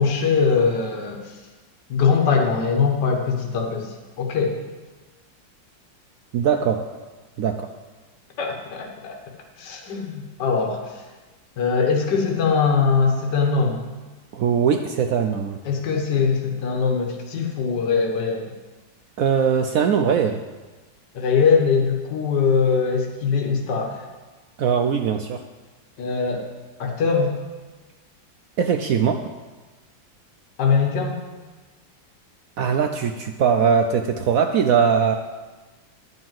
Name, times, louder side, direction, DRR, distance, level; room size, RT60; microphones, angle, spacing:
voice 1, 0.0-1.3 1.9-4.6 8.4-9.2 9.6-11.0 11.6-13.8 15.6-18.5 21.1-24.0 26.0-26.5 26.8-27.3 30.6-31.2, left 5 dB, 65° left, 1 dB, 1.8 m, -21 dB
voice 2, 6.3-6.8 7.4-7.7 14.3-15.6 19.2-20.4 24.6-25.4 28.6-29.3 32.6-35.1, right 7 dB, 80° right, 5 dB, 0.7 m, -20 dB
11.5 x 5.5 x 7.6 m, 1.3 s
omnidirectional pair, 2.1 m